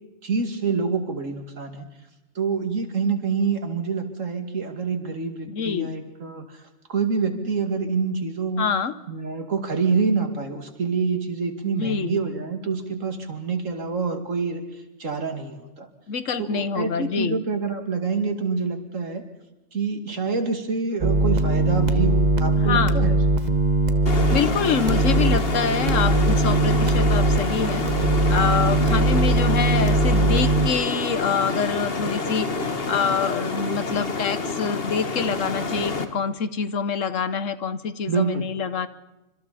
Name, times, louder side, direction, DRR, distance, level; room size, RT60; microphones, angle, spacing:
voice 1, 0.2-1.9 2.3-8.7 9.1-15.9 16.4-19.2 19.7-23.1 38.1-38.5, right 5 dB, 90° right, 5 dB, 2.7 m, -26 dB
voice 2, 5.5-5.9 8.6-8.9 11.6-12.2 16.1-17.4 22.6-23.0 24.3-27.8 28.3-32.5 32.9-38.9, left 6 dB, 80° left, 13 dB, 1.4 m, -26 dB
sound 1, 21.0-30.7, right 2 dB, 35° right, 1.4 m, -20 dB
sound 2, 24.1-36.0, left 3 dB, 50° left, 1.8 m, -28 dB
29.0 x 26.0 x 4.2 m, 1.0 s
omnidirectional pair, 1.3 m